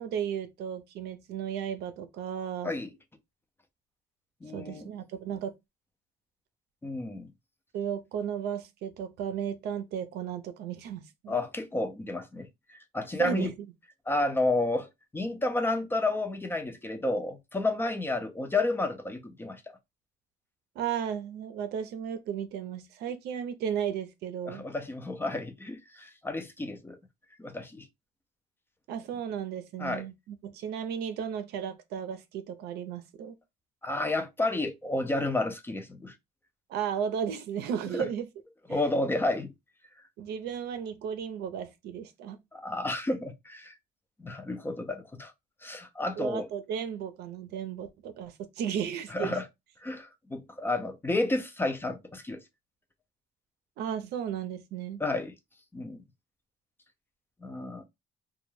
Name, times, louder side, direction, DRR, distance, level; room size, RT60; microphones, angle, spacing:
voice 1, 0.0-2.7 4.5-5.5 7.7-11.3 13.2-13.7 20.8-24.7 28.9-33.4 36.7-38.3 38.7-38.8 40.2-42.4 46.2-49.4 53.8-55.0, right 8 dB, 75° right, 0.5 m, -34 dB
voice 2, 4.4-4.9 6.8-7.3 11.3-12.5 12.9-13.5 14.1-14.9 15.1-19.6 24.5-27.0 27.4-27.9 29.8-30.0 33.8-36.1 37.9-38.1 38.7-39.5 42.5-43.7 44.2-45.3 45.6-46.5 49.1-49.5 49.8-52.4 55.0-55.3 55.7-56.0 57.4-57.8, left 2 dB, 15° left, 0.3 m, -31 dB
2.2 x 2.1 x 3.1 m
cardioid pair, 110°, 17 cm